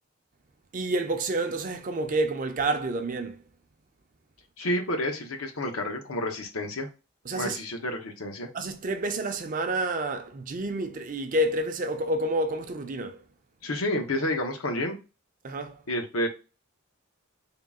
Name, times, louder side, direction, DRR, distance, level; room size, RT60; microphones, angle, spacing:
voice 1, 0.7-3.4 7.3-7.6 8.5-13.2 15.4-15.8, right 1 dB, 40° right, 0.5 m, -29 dB
voice 2, 4.6-6.9 7.3-8.5 13.6-15.0 15.9-16.3, left 1 dB, 85° left, 0.8 m, -30 dB
3.7 x 2.3 x 3.6 m
head